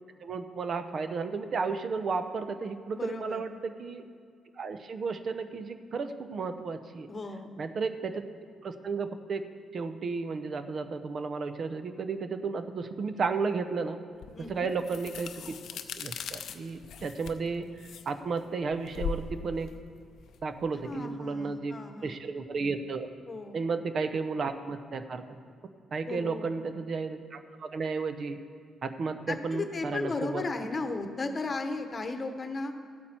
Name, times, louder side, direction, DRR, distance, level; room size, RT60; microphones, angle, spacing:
voice 1, 0.2-4.0 4.6-7.1 7.6-8.2 8.6-9.4 9.7-14.0 14.5-15.5 16.0-17.7 18.1-19.7 20.4-21.8 22.0-23.1 23.5-25.2 25.9-28.4 28.8-30.4, right 4 dB, 50° right, 9 dB, 0.7 m, -33 dB
voice 2, 2.9-3.4 7.1-7.5 14.3-14.7 20.8-22.1 23.3-23.6 26.1-26.6 29.3-32.7, left 3 dB, 35° left, 7 dB, 1.0 m, -35 dB
sound 1, 14.2-21.0, left 6 dB, 70° left, 0.6 m, -40 dB
14.0 x 8.5 x 4.4 m, 2.2 s
cardioid pair, 90°, 0 cm